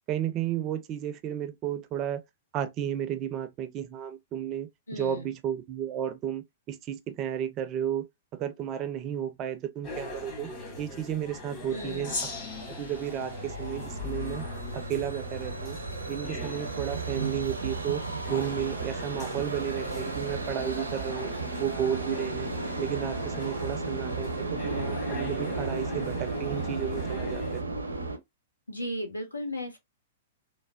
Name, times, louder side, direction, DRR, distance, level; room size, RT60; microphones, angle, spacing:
voice 1, 0.1-2.2 2.5-10.5 10.8-12.2 12.8-14.4 14.7-15.8 16.1-18.0 18.3-21.3 21.6-22.5 22.8-27.6, right 10 dB, 35° right, 0.4 m, -33 dB
voice 2, 4.9-5.3 11.7-12.2 28.7-29.8, left 1 dB, 85° left, 0.7 m, -35 dB
sound 1, 9.8-27.6, left 3 dB, 30° left, 1.6 m, -42 dB
Gong, 12.0-14.7, left 3 dB, 55° left, 1.4 m, -40 dB
sound 2, 12.1-28.2, right 3 dB, 85° right, 0.6 m, -34 dB
3.3 x 2.0 x 2.2 m
figure-of-eight pair, 105°, 0 cm